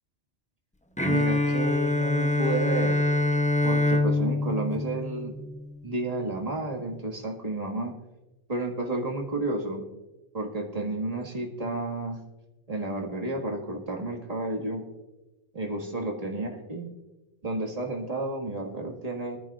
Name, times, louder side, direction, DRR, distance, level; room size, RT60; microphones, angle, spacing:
Bowed string instrument, 1.0-5.8, left 2 dB, 10° left, 0.5 m, -25 dB
voice 1, 1.0-3.0 3.6-5.3 5.8-7.9 8.5-9.8 10.3-12.2 12.7-14.9 15.5-16.9 17.4-19.4, right 2 dB, 30° right, 1 dB, 1.8 m, -31 dB
23.5 x 10.5 x 2.4 m, 1.0 s
omnidirectional pair, 1.2 m